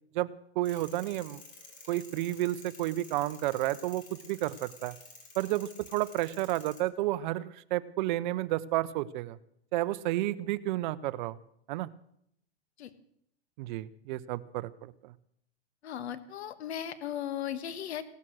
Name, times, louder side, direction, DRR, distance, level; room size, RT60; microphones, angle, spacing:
voice 1, 0.6-1.4 1.9-4.9 5.4-9.4 9.7-11.4 11.7-11.9 13.6-15.1, right 15 dB, 45° right, 17 dB, 0.8 m, -31 dB
sound 1, 0.7-6.8, left 3 dB, 25° left, 3.6 m, -51 dB
voice 2, 15.8-18.0, left 10 dB, 75° left, 13 dB, 1.6 m, -37 dB
17.5 x 12.5 x 6.3 m, 0.70 s
hypercardioid pair, 140°, 32 cm